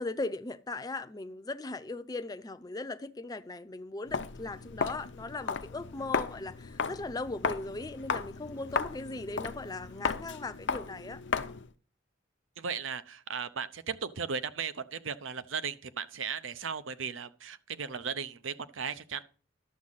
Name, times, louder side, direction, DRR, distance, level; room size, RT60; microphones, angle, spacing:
voice 1, 0.0-11.2, left 2 dB, 20° left, 0.5 m, -38 dB
Walk footsteps, 4.1-11.7, left 5 dB, 65° left, 0.7 m, -35 dB
voice 2, 12.6-19.2, right 6 dB, 85° right, 0.7 m, -36 dB
11.5 x 7.3 x 4.0 m
head